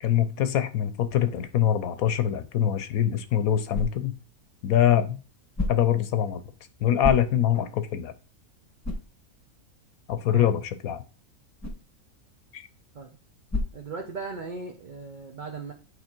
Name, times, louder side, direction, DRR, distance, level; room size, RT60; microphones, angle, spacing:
voice 1, 0.0-4.2 4.6-5.2 5.7-6.4 6.8-8.1 10.1-11.0 12.5-12.6, left 10 dB, 75° left, 12 dB, 1.1 m, -24 dB
sound 1, 2.9-14.6, left 2 dB, 10° left, 1.1 m, -37 dB
voice 2, 13.7-15.7, right 4 dB, 40° right, 1 dB, 0.9 m, -37 dB
8.0 x 3.9 x 4.4 m, 0.34 s
omnidirectional pair, 1.6 m